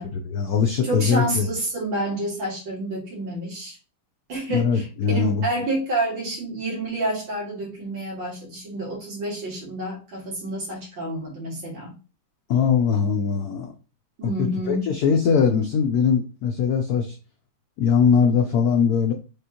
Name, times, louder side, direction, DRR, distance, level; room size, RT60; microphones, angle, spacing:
voice 1, 0.3-1.5 4.5-5.5 12.5-13.7 14.4-17.2 17.8-19.1, left 6 dB, 85° left, 5 dB, 0.8 m, -21 dB
voice 2, 0.8-3.8 4.3-11.9 14.2-14.9, right 1 dB, 65° right, -4 dB, 2.7 m, -29 dB
5.2 x 3.4 x 2.9 m, 0.33 s
omnidirectional pair, 2.3 m